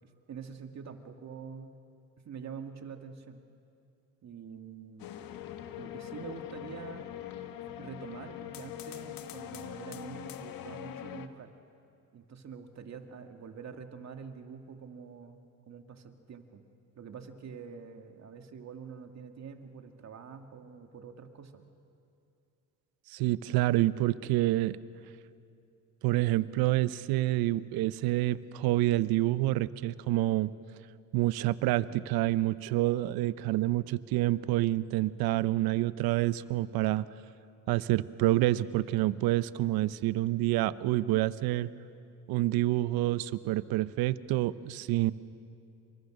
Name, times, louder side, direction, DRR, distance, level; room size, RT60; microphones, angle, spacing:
voice 1, 0.0-1.7 2.2-3.4 4.2-5.1 5.8-7.1 7.7-11.5 12.1-15.4 15.7-16.6 17.0-21.6, right 6 dB, 45° right, 5 dB, 2.5 m, -46 dB
sound 1, 5.0-11.3, left 11 dB, 65° left, 1.5 m, -42 dB
voice 2, 23.1-24.8 26.0-30.5 31.1-37.1 37.7-41.7 42.3-45.1, right 16 dB, 70° right, 16 dB, 0.9 m, -28 dB
28.5 x 24.0 x 6.6 m, 2.5 s
supercardioid pair, 75°, 37 cm